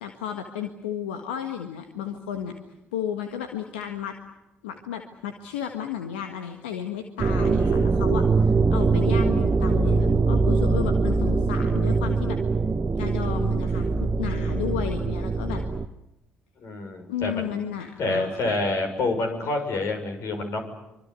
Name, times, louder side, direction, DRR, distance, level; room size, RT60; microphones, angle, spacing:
voice 1, 0.0-2.5 2.9-4.2 4.6-12.4 13.0-15.6 17.1-18.5, left 9 dB, 80° left, 6 dB, 1.6 m, -33 dB
sound 1, 7.2-15.9, right 4 dB, 35° right, 1.3 m, -22 dB
voice 2, 7.6-8.0 16.6-17.6 18.0-20.6, left 2 dB, 60° left, 5 dB, 6.4 m, -28 dB
25.0 x 24.5 x 8.3 m, 0.94 s
hypercardioid pair, 50°, 6 cm